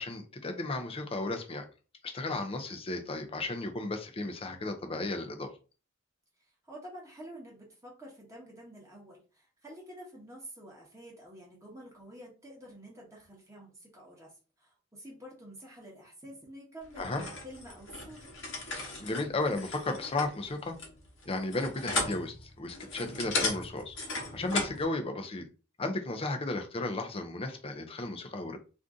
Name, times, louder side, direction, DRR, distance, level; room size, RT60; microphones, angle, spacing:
voice 1, 0.0-1.6 2.0-5.5 17.0-17.2 19.0-20.8 21.3-24.0 24.3-25.4 25.8-28.6, left 2 dB, 25° left, 0.5 m, -34 dB
voice 2, 6.6-14.3 14.6-18.3, equal, 15° right, 0.9 m, -49 dB
sound 1, 16.9-24.8, left 3 dB, 60° left, 1.0 m, -36 dB
2.5 x 2.5 x 3.5 m
head